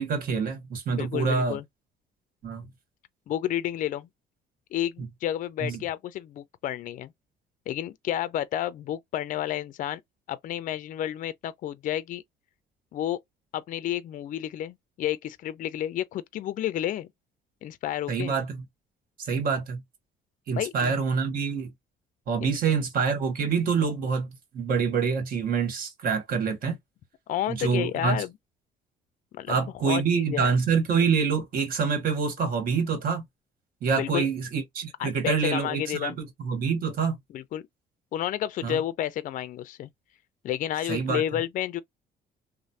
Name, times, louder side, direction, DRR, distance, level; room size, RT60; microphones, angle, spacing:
voice 1, 0.0-1.6 2.4-2.6 5.6-5.8 18.1-18.6 19.2-19.8 20.5-21.7 22.3-24.3 24.5-26.7 27.5-28.2 29.5-33.2 33.8-37.2 38.6-38.8 40.9-41.2, right 5 dB, 55° right, 1.4 m, -26 dB
voice 2, 0.9-1.6 3.3-4.1 4.7-7.1 7.7-10.0 10.3-12.2 12.9-13.2 13.5-17.1 17.6-18.4 20.5-20.9 22.4-22.5 27.3-28.3 29.3-30.5 33.9-34.3 35.0-36.2 37.3-37.7 38.1-39.9 40.4-41.8, left 12 dB, 50° left, 0.4 m, -31 dB
3.1 x 2.0 x 2.7 m
cardioid pair, 110°, 17 cm